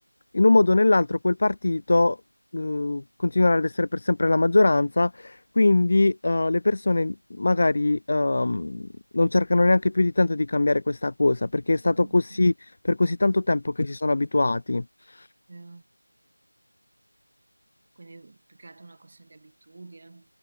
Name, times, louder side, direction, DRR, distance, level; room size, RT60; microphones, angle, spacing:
voice 1, 0.3-2.2 2.5-15.3, left 2 dB, 40° left, 0.3 m, -22 dB
voice 2, 11.8-12.2 15.5-15.8 18.0-20.2, right 3 dB, 30° right, 1.5 m, -47 dB
figure-of-eight pair, 175°, 0 cm